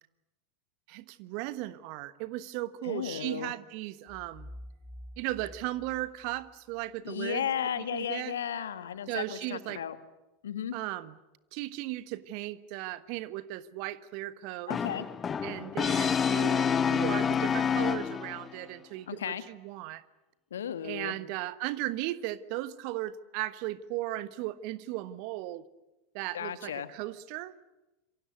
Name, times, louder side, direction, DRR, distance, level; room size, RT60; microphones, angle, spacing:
voice 1, 0.9-4.5 5.2-7.5 7.8-8.3 9.1-9.8 10.7-11.2 11.5-14.7 15.4-20.0 20.8-25.6 26.1-27.5, right 16 dB, 50° right, 15 dB, 1.3 m, -36 dB
voice 2, 2.8-3.5 7.0-10.0 10.4-10.7 14.7-15.1 19.1-19.4 20.5-21.1 26.3-26.9, left 9 dB, 70° left, 11 dB, 1.8 m, -34 dB
sound 1, 4.1-6.9, left 1 dB, ahead, 5.6 m, -48 dB
Brass instrument, 14.7-18.5, left 7 dB, 25° left, 1.4 m, -28 dB
27.5 x 24.0 x 8.1 m, 1.0 s
figure-of-eight pair, 85°, 0 cm